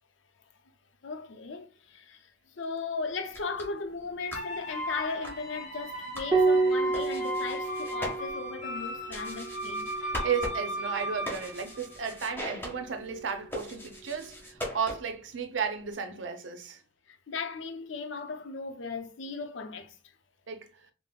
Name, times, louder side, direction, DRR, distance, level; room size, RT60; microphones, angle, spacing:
voice 1, 1.0-2.3 2.6-9.9 17.1-20.0, left 4 dB, 85° left, 0.5 m, -37 dB
sound 1, 3.2-15.3, equal, 10° left, 1.2 m, -42 dB
sound 2, 4.3-12.3, equal, 45° left, 0.9 m, -37 dB
Piano, 6.3-11.2 12.8-13.6, right 3 dB, 20° right, 0.6 m, -30 dB
voice 2, 9.9-16.8 20.5-20.7, right 6 dB, 85° right, 0.6 m, -34 dB
4.9 x 2.0 x 2.2 m
head